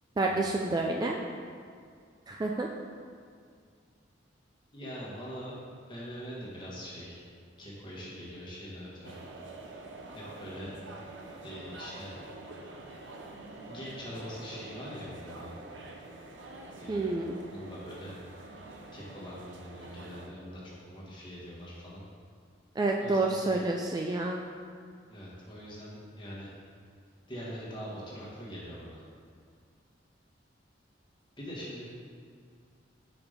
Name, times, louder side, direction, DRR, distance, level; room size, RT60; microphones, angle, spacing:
voice 1, 0.2-1.2 2.3-2.7 16.9-17.4 22.8-24.4, right 2 dB, 20° right, 0 dB, 0.3 m, -29 dB
voice 2, 4.7-5.6 5.9-7.2 7.6-9.2 10.1-10.7 11.4-12.1 13.7-15.5 16.8-17.1 17.5-18.1 18.9-22.0 23.0-23.4 25.1-26.5 27.3-29.0 31.4-31.9, equal, 25° left, -6 dB, 1.6 m, -43 dB
sound 1, 9.0-20.3, right 2 dB, 70° right, 0.7 m, -46 dB
5.3 x 4.9 x 5.1 m, 2.2 s
head